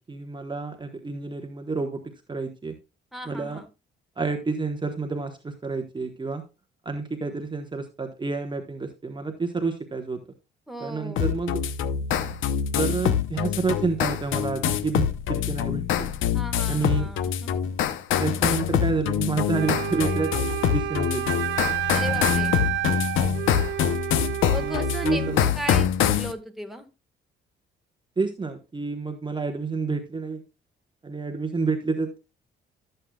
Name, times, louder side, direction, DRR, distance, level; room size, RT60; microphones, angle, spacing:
voice 1, 0.0-2.0 2.3-2.7 3.2-3.6 4.2-6.4 6.8-10.2 10.8-11.6 12.8-16.1 16.7-17.1 18.2-20.3 20.7-21.3 23.2-23.5 24.4-25.5 28.2-30.4 31.0-32.2, right 4 dB, 25° right, 5 dB, 1.1 m, -29 dB
voice 2, 3.1-3.7 10.7-11.3 16.3-17.5 21.9-22.6 24.5-26.9, right 1 dB, ahead, 4 dB, 1.5 m, -36 dB
sound 1, 11.2-26.3, left 9 dB, 80° left, 0.8 m, -25 dB
Wind instrument woodwind instrument, 19.5-25.4, right 14 dB, 70° right, 0.5 m, -30 dB
12.5 x 7.8 x 2.3 m, 0.28 s
cardioid pair, 90°, 20 cm